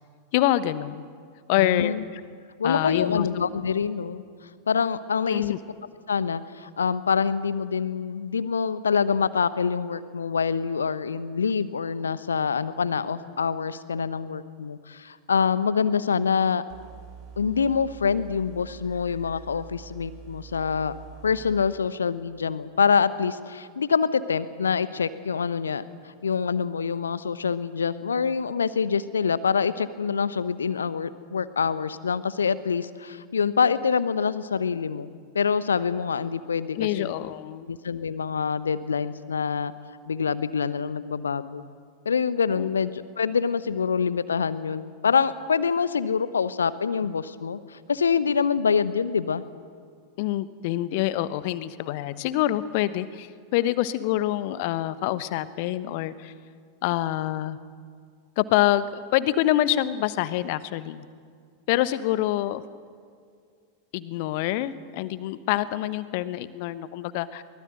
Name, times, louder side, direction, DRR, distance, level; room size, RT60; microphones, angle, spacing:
voice 1, 0.3-1.0 1.5-2.2 2.6-3.3 5.2-5.6 36.8-37.7 42.6-42.7 50.2-56.3 56.8-57.6 58.4-61.1 61.7-62.6 63.9-67.4, left 14 dB, 50° left, 15 dB, 1.1 m, -26 dB
voice 2, 1.6-2.0 2.6-4.2 4.7-5.4 6.1-16.6 17.4-20.9 21.2-25.8 26.2-37.1 37.7-39.7 40.1-41.6 42.0-49.4, left 6 dB, 70° left, 15 dB, 1.0 m, -25 dB
sound 1, 16.7-21.7, right 8 dB, 40° right, 4.0 m, -45 dB
23.5 x 20.5 x 7.8 m, 2.1 s
figure-of-eight pair, 90°, 0 cm